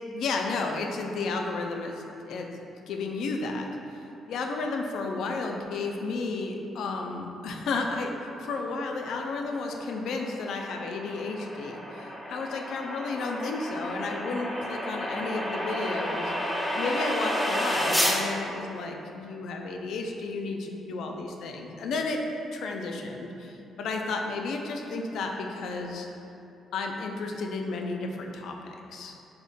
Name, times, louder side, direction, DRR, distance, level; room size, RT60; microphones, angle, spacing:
voice 1, 0.1-2.5 2.9-4.0 4.3-22.2 22.5-26.1 26.7-28.6 28.9-29.2, left 3 dB, 75° left, 2 dB, 0.3 m, -32 dB
sound 1, 9.5-18.2, equal, 5° left, 0.5 m, -31 dB
3.5 x 2.1 x 3.9 m, 2.8 s
cardioid pair, 90°, 0 cm